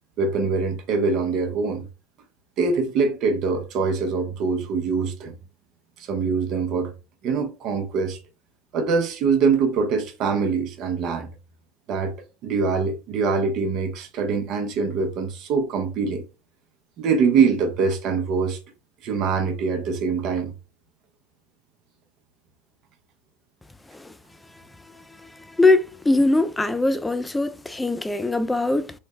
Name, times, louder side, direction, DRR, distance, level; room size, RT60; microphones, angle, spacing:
voice 1, 0.2-1.9 2.6-5.3 6.0-6.9 7.2-8.2 8.7-11.3 11.9-12.2 12.4-16.2 17.0-18.6 19.0-20.5, right 5 dB, 55° right, 0.7 m, -23 dB
voice 2, 25.6-28.9, left 2 dB, 10° left, 0.3 m, -21 dB
3.2 x 2.1 x 3.2 m
hypercardioid pair, 95°, 0 cm